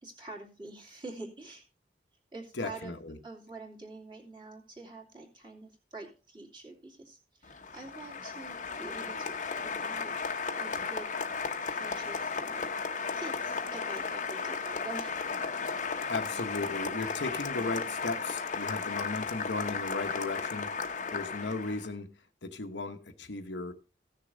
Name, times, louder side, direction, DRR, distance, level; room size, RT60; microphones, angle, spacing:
voice 1, 0.0-1.6 2.3-3.0 3.2-9.3 9.6-10.1 10.6-11.1 11.6-12.7 13.2-15.5, right 2 dB, 25° right, 2.5 m, -46 dB
voice 2, 2.6-3.2 16.1-22.1 22.4-23.7, left 3 dB, 85° left, 1.1 m, -36 dB
Applause, 7.4-21.9, left 5 dB, 45° left, 0.9 m, -35 dB
15.5 x 6.7 x 3.8 m
head